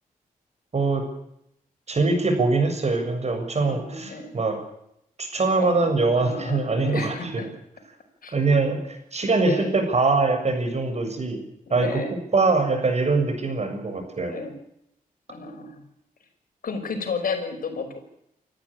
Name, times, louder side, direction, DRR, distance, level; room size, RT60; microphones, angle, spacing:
voice 1, 0.7-1.0 1.9-4.6 5.2-7.4 8.3-11.4 11.7-12.0 12.3-14.3, right 3 dB, 45° right, 5 dB, 7.2 m, -23 dB
voice 2, 3.7-4.3 5.6-7.5 8.2-8.3 9.4-9.7 11.8-12.1 14.3-14.6 15.3-15.9 16.6-18.0, left 4 dB, 75° left, 5 dB, 5.6 m, -32 dB
27.5 x 14.0 x 8.9 m, 0.77 s
cardioid pair, 80°, 15 cm